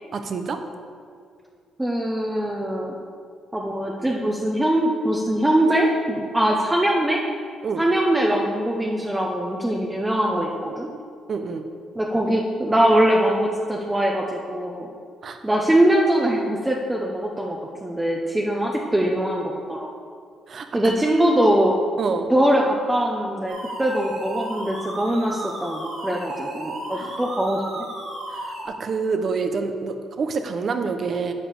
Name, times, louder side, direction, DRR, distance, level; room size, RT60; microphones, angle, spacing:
voice 1, 0.1-0.6 7.6-7.9 11.3-11.6 15.2-15.4 20.5-20.9 22.0-22.3 26.9-27.2 28.3-31.3, right 5 dB, 50° right, 7 dB, 0.9 m, -27 dB
voice 2, 1.8-2.9 3.5-7.2 7.8-10.9 12.0-14.9 15.4-19.9 20.7-21.7 22.3-27.8, right 1 dB, 10° right, -1 dB, 1.0 m, -22 dB
sound 1, 23.5-28.6, right 1 dB, 85° right, 2.7 m, -34 dB
10.0 x 5.1 x 7.4 m, 2.2 s
cardioid pair, 90°, 0 cm